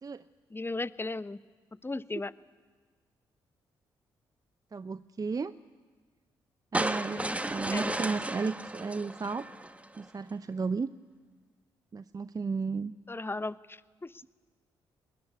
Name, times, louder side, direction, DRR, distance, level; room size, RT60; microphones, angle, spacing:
voice 1, 0.5-1.4 1.8-2.3 7.1-8.0 13.1-14.3, left 2 dB, 20° left, 16 dB, 0.9 m, -36 dB
voice 2, 4.7-5.5 6.7-9.5 10.0-10.9 11.9-12.9, right 4 dB, 35° right, 14 dB, 0.7 m, -34 dB
sound 1, 6.7-10.0, right 1 dB, 10° right, 1.3 m, -34 dB
24.0 x 20.0 x 9.5 m, 1.5 s
hypercardioid pair, 40°, 11 cm